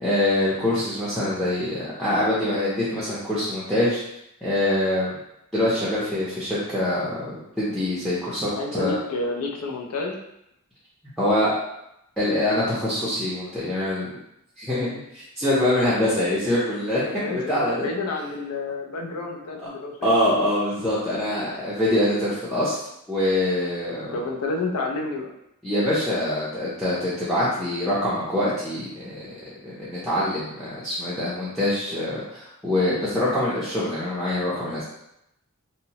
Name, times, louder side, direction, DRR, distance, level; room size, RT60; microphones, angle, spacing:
voice 1, 0.0-4.0 4.4-5.2 5.5-9.0 11.2-11.5 12.2-14.2 14.6-17.9 20.0-22.8 23.1-24.1 25.6-29.2 29.6-34.8, left 1 dB, ahead, -10 dB, 0.5 m, -24 dB
voice 2, 8.5-10.2 17.2-20.1 24.1-25.3, left 3 dB, 85° left, 1 dB, 0.5 m, -29 dB
2.7 x 2.0 x 2.8 m, 0.82 s
head